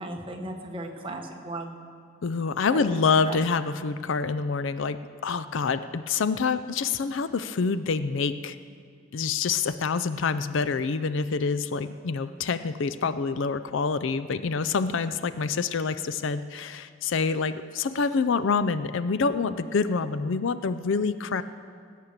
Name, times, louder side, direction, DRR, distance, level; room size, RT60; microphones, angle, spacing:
voice 1, 0.0-1.7 2.7-3.0 3.3-3.4, right 1 dB, 25° right, 2 dB, 1.3 m, -36 dB
voice 2, 2.2-8.6 9.1-21.4, left 5 dB, 65° left, 14 dB, 0.4 m, -27 dB
19.0 x 8.4 x 6.6 m, 2.1 s
head